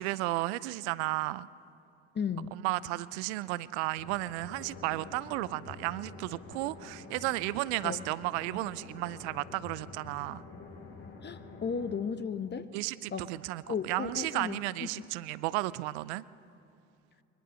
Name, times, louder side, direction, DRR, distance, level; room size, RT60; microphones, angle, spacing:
voice 1, 0.0-1.5 2.5-10.4 12.7-16.2, right 19 dB, 70° right, 19 dB, 0.6 m, -33 dB
voice 2, 2.1-2.5 7.8-8.0 11.2-12.7 13.1-13.3 13.7-14.6 14.9-15.0, left 6 dB, 30° left, 10 dB, 1.0 m, -34 dB
sound 1, 4.0-12.0, left 4 dB, 50° left, 7.3 m, -48 dB
22.0 x 20.5 x 6.4 m, 2.6 s
hypercardioid pair, 60°, 34 cm